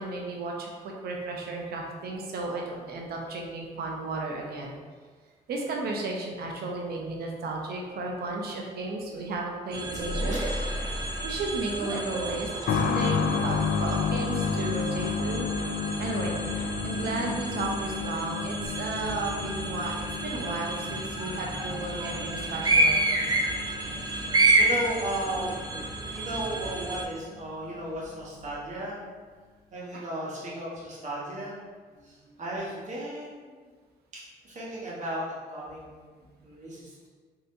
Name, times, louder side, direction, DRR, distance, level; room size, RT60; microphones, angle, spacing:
voice 1, 0.0-4.8 5.5-10.4 11.2-15.5 16.0-16.4 16.8-23.2 29.9-30.0 32.3-32.4, right 3 dB, 75° right, 0 dB, 0.6 m, -34 dB
sound 1, 9.7-27.0, right 2 dB, 25° right, 0.5 m, -30 dB
sound 2, 10.0-12.1, left 1 dB, 90° left, 1.0 m, -34 dB
sound 3, 12.7-27.1 27.4-27.5 28.4-28.5, left 6 dB, 60° left, 0.4 m, -32 dB
voice 2, 23.9-24.3 24.6-25.6 26.1-29.0 29.7-31.5 32.0-33.7 34.1-37.1, right 1 dB, 50° right, -6 dB, 1.2 m, -35 dB
3.2 x 2.8 x 2.7 m, 1.5 s
cardioid pair, 90°, 16 cm